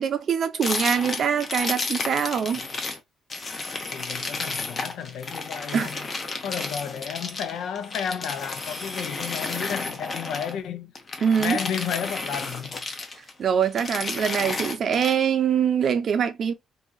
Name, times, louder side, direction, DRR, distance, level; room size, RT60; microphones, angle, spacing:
voice 1, 0.0-2.7 5.7-5.9 11.2-11.6 13.4-16.5, right 7 dB, 55° right, 0.6 m, -23 dB
sound 1, 0.6-3.0 3.3-10.6 11.0-13.3 13.6-15.2, left 3 dB, 40° left, 0.7 m, -32 dB
voice 2, 3.9-6.1 6.4-12.8, left 8 dB, 80° left, 0.4 m, -32 dB
2.7 x 2.4 x 2.2 m
cardioid pair, 90°, 0 cm